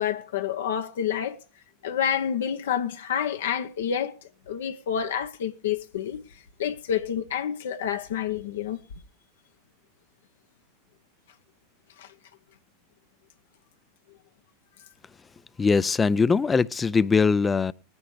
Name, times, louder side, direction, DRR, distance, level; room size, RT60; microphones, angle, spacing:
voice 1, 0.0-1.4 1.8-4.1 4.5-6.2 6.6-8.8 12.0-12.1, left 9 dB, 70° left, 0.9 m, -28 dB
voice 2, 15.6-17.7, left 5 dB, 20° left, 0.5 m, -21 dB
20.5 x 9.7 x 3.2 m
figure-of-eight pair, 85°, 0 cm